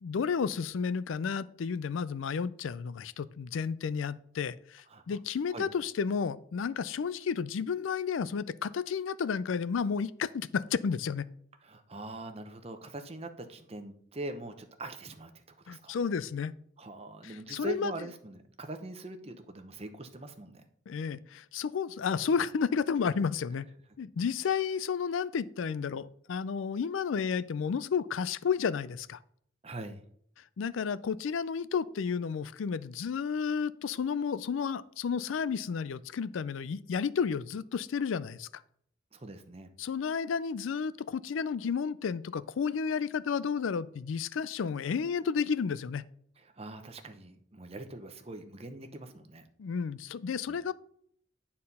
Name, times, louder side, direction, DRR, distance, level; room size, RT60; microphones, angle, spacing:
voice 1, 0.0-11.3 15.7-16.5 17.2-17.9 20.9-23.7 24.0-29.2 30.6-38.6 39.8-46.0 49.6-50.7, left 6 dB, 80° left, 18 dB, 0.4 m, -32 dB
voice 2, 11.6-16.0 16.8-20.6 29.6-30.0 39.1-39.7 46.4-49.5 50.2-50.6, right 2 dB, 30° right, 7 dB, 0.8 m, -43 dB
9.5 x 4.3 x 5.4 m, 0.65 s
head